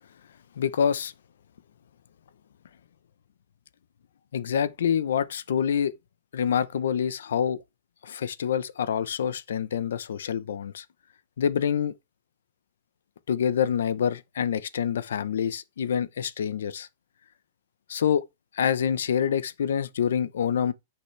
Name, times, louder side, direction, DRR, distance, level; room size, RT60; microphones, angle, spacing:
voice 1, 0.6-1.1 4.3-5.9 6.3-7.6 8.0-10.8 11.4-11.9 13.3-16.9 17.9-18.2 18.5-20.7, left 8 dB, 85° left, 0.8 m, -26 dB
10.0 x 5.9 x 3.3 m
supercardioid pair, 170°, 0 cm